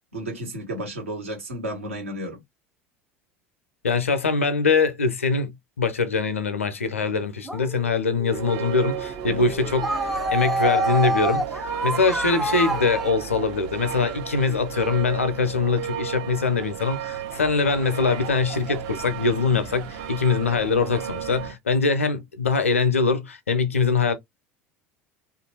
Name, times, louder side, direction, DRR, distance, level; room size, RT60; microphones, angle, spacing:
voice 1, 0.0-2.4 9.3-9.5, right 1 dB, 75° right, 1.3 m, -33 dB
voice 2, 3.8-5.5 5.8-11.4 11.8-24.1, left 4 dB, 80° left, 0.5 m, -23 dB
sound 1, 7.4-13.1, right 1 dB, ahead, 0.6 m, -28 dB
sound 2, 8.3-21.6, right 10 dB, 55° right, 0.7 m, -33 dB
2.7 x 2.5 x 2.8 m
figure-of-eight pair, 70°, 7 cm